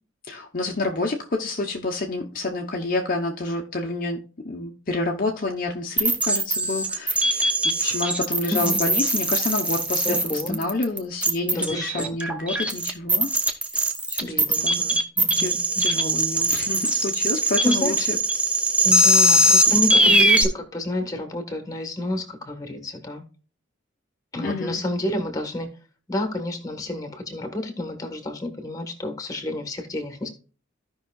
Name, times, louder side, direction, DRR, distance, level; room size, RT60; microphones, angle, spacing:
voice 1, 0.3-4.2 4.4-13.3 14.1-14.3 14.6-14.8 15.4-15.5 15.8-18.1 19.9-20.3 24.4-24.8, left 2 dB, 45° left, 0.8 m, -28 dB
sound 1, 6.0-20.4, right 1 dB, 5° right, 0.7 m, -21 dB
voice 2, 8.5-8.8 10.0-10.6 11.5-12.2 14.2-15.8 17.6-18.2 18.8-23.2 24.3-25.7 26.1-30.3, left 1 dB, 15° left, 1.3 m, -29 dB
15.0 x 5.5 x 2.3 m
head